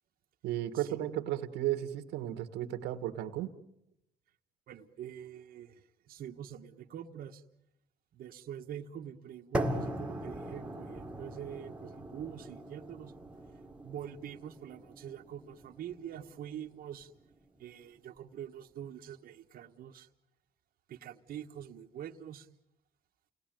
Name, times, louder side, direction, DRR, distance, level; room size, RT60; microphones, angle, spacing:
voice 1, 0.4-3.5, right 13 dB, 90° right, 1.6 m, -34 dB
voice 2, 4.7-7.4 8.1-13.1 13.8-17.1 17.6-20.1 20.9-22.5, right 9 dB, 60° right, 1.4 m, -45 dB
sound 1, 9.5-17.6, right 1 dB, 5° right, 2.4 m, -40 dB
29.5 x 19.0 x 9.2 m
cardioid pair, 110°, 17 cm